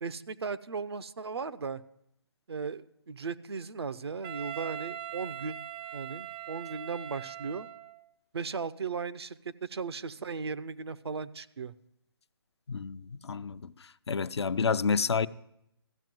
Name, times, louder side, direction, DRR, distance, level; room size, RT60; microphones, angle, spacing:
voice 1, 0.0-1.8 2.5-5.6 5.9-7.7 8.3-11.7, right 5 dB, 75° right, 0.7 m, -37 dB
Wind instrument woodwind instrument, 4.2-8.1, right 10 dB, 20° right, 0.4 m, -41 dB
voice 2, 12.7-13.7 14.1-15.3, left 5 dB, 85° left, 0.6 m, -29 dB
14.0 x 7.1 x 7.6 m
hypercardioid pair, 150°, 14 cm